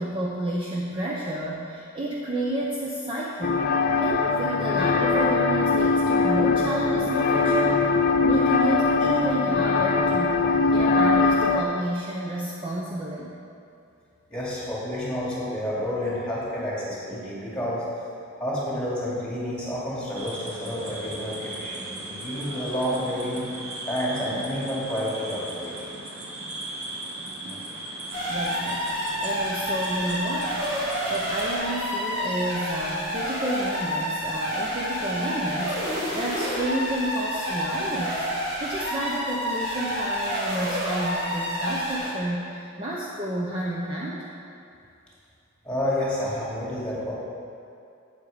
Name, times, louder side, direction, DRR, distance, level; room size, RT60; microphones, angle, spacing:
voice 1, 0.0-3.6 4.0-7.8 8.2-13.3 27.4-27.7 28.3-28.9 29.2-30.6 31.1-44.2, right 1 dB, 25° right, -4 dB, 0.7 m, -30 dB
sound 1, 3.4-11.6, left 4 dB, 45° left, 0.5 m, -22 dB
voice 2, 14.3-17.8 18.4-23.4 23.9-25.9 45.6-47.1, left 1 dB, 5° left, -7 dB, 2.5 m, -29 dB
sound 2, 20.1-31.5, right 1 dB, 90° right, 1.6 m, -37 dB
sound 3, 28.1-42.2, equal, 55° right, 2.6 m, -29 dB
8.2 x 8.1 x 5.1 m, 2.5 s
head